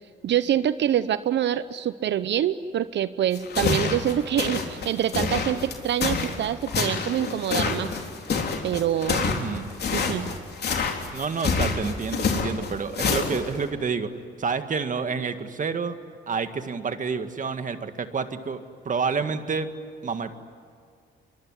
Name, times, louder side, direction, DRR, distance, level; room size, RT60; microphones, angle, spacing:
voice 1, 0.2-8.0 8.6-9.3 9.9-10.3, right 10 dB, 65° right, 14 dB, 0.7 m, -25 dB
sound 1, 3.3-13.6, left 5 dB, 55° left, 3.7 m, -27 dB
voice 2, 9.2-9.7 11.1-14.1 14.4-15.9 16.3-18.6 18.9-19.7 20.0-20.3, right 5 dB, 40° right, 9 dB, 1.9 m, -29 dB
25.0 x 23.5 x 9.9 m, 2.3 s
cardioid pair, 90°, 20 cm